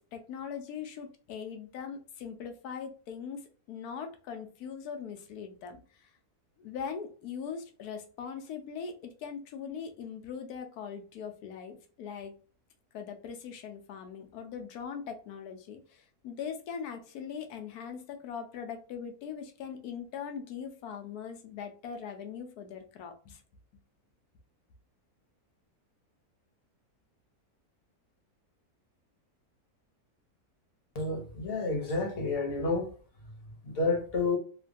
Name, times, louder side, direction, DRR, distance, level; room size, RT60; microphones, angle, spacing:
voice 1, 0.0-6.1 6.6-12.3 12.9-23.4, left 7 dB, 85° left, 1.2 m, -41 dB
voice 2, 30.9-32.9 33.6-34.4, left 3 dB, 50° left, 0.9 m, -30 dB
3.1 x 2.2 x 2.5 m
omnidirectional pair, 1.6 m